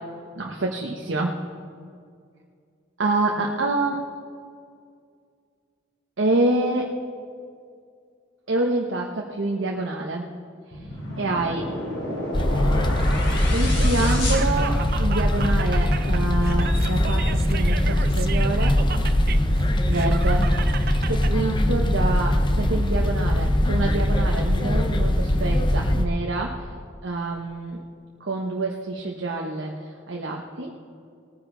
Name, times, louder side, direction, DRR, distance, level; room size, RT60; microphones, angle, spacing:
voice 1, 0.4-1.3 3.0-4.0 6.2-6.9 8.5-10.3 10.7-10.9 11.2-11.7 13.5-18.8 19.9-20.5 21.1-26.7 27.0-27.8 28.2-30.7, right 2 dB, 80° right, 0 dB, 1.0 m, -27 dB
sound 1, 10.7-15.3, left 1 dB, 80° left, 3.7 m, -31 dB
sound 2, 12.3-26.0, left 1 dB, 25° left, 0.7 m, -21 dB
Laughter, 13.6-21.3, right 7 dB, 55° right, 0.5 m, -35 dB
19.5 x 9.6 x 3.9 m, 2.3 s
head